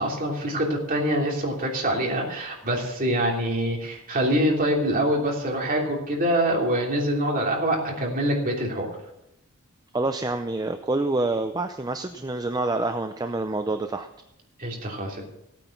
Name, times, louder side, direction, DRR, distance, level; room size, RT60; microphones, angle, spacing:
voice 1, 0.0-8.9 14.6-15.3, right 1 dB, 40° right, 0 dB, 3.1 m, -25 dB
voice 2, 9.9-14.1, right 2 dB, 15° right, 8 dB, 0.5 m, -27 dB
15.5 x 9.2 x 5.9 m, 0.85 s
head